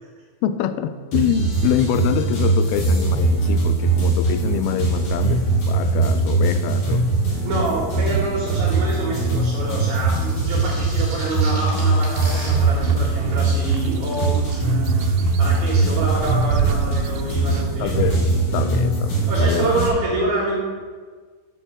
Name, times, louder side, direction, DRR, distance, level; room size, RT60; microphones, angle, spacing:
voice 1, 0.4-7.1 17.8-19.7, left 10 dB, 80° left, 11 dB, 2.3 m, -25 dB
sound 1, 1.1-19.9, right 3 dB, 55° left, 3.9 m, -21 dB
voice 2, 7.4-14.6 15.4-17.9 19.3-20.5, right 2 dB, 65° right, -6 dB, 3.7 m, -26 dB
sound 2, 10.2-12.5, right 2 dB, 45° right, 4.0 m, -36 dB
sound 3, 12.5-18.2, right 9 dB, 85° right, 2.5 m, -31 dB
8.6 x 5.5 x 7.9 m, 1.5 s
omnidirectional pair, 4.7 m